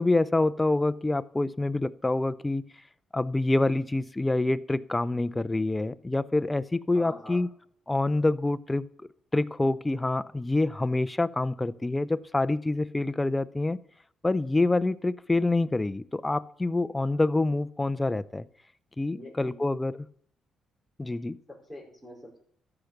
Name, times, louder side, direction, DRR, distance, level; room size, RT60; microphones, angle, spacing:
voice 1, 0.0-2.6 3.1-7.5 7.9-8.9 9.3-13.8 14.2-18.4 19.0-19.9 21.0-21.4, left 2 dB, 15° left, 15 dB, 0.5 m, -26 dB
voice 2, 6.9-7.4 19.1-19.6 21.1-21.2 21.5-22.4, left 1 dB, 5° right, -3 dB, 5.0 m, -45 dB
13.5 x 5.9 x 6.5 m, 0.65 s
cardioid pair, 90°, 0 cm